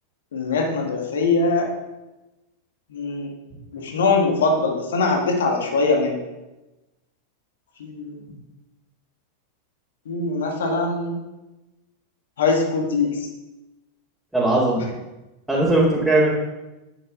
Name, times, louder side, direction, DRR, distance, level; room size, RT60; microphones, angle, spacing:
voice 1, 0.3-1.7 2.9-3.3 3.7-6.2 7.8-8.2 10.1-11.2 12.4-13.3, left 3 dB, 60° left, 1 dB, 2.1 m, -22 dB
voice 2, 14.3-14.8 15.5-16.3, right 2 dB, 5° right, -9 dB, 2.7 m, -18 dB
10.0 x 9.9 x 3.9 m, 1.0 s
figure-of-eight pair, 90°, 0 cm